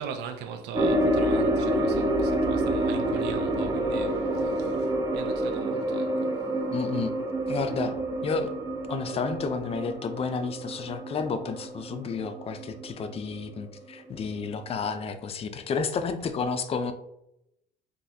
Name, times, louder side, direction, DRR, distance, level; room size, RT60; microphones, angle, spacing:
voice 1, 0.0-6.4, right 6 dB, 80° right, 0.4 m, -40 dB
sound 1, 0.7-13.3 13.6-13.7 14.2-14.3, right 1 dB, 20° right, 0.5 m, -28 dB
voice 2, 6.7-7.1 7.5-8.5 8.9-16.9, left 5 dB, 35° left, 0.4 m, -31 dB
3.9 x 2.5 x 2.6 m
cardioid pair, 110°, 17 cm